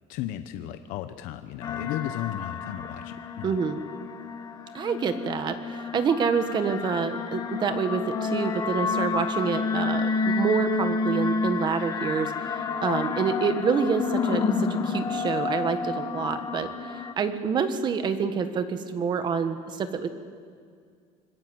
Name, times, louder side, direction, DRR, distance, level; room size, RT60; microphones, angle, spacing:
voice 1, 0.1-3.6, left 12 dB, 65° left, 9 dB, 1.0 m, -34 dB
sound 1, 1.6-17.1, left 4 dB, 25° left, 1.4 m, -30 dB
voice 2, 3.4-3.8 4.7-12.3 12.8-20.1, right 6 dB, 30° right, 9 dB, 1.5 m, -27 dB
26.0 x 20.5 x 7.9 m, 2.1 s
cardioid pair, 160°, 15 cm